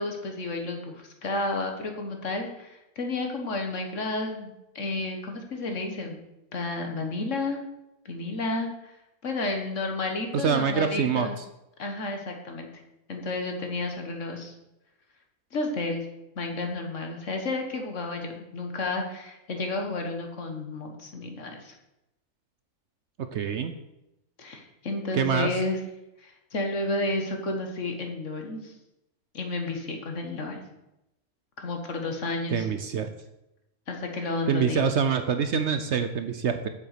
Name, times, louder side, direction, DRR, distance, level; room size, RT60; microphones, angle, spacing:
voice 1, 0.0-6.2 6.5-7.6 8.0-8.9 9.2-11.4 11.8-12.7 13.1-14.5 15.5-16.1 16.3-21.7 24.4-25.8 26.2-28.7 29.3-30.6 31.6-32.7 33.9-34.9, left 2 dB, 60° left, 4 dB, 1.7 m, -31 dB
voice 2, 10.3-11.3 23.3-23.7 25.1-25.5 32.5-33.1 34.5-36.7, right 7 dB, 60° right, 8 dB, 0.8 m, -25 dB
7.8 x 7.1 x 6.6 m, 0.91 s
omnidirectional pair, 1.5 m